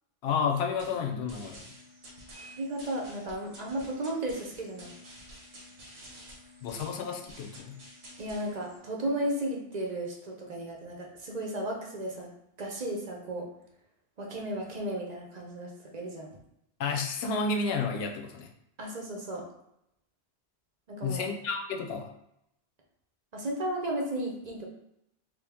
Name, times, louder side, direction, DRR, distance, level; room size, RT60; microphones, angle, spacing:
voice 1, 0.2-1.6 6.6-7.8 16.8-18.5 21.0-22.1, left 5 dB, 75° left, 3 dB, 0.8 m, -31 dB
sound 1, 0.8-8.8, equal, 80° right, 1.3 m, -50 dB
voice 2, 2.4-4.9 8.2-12.3 12.6-13.5 14.2-16.3 18.8-19.4 20.9-21.2 23.3-24.7, right 1 dB, 45° right, -1 dB, 0.8 m, -34 dB
3.3 x 2.8 x 3.5 m, 0.79 s
omnidirectional pair, 1.1 m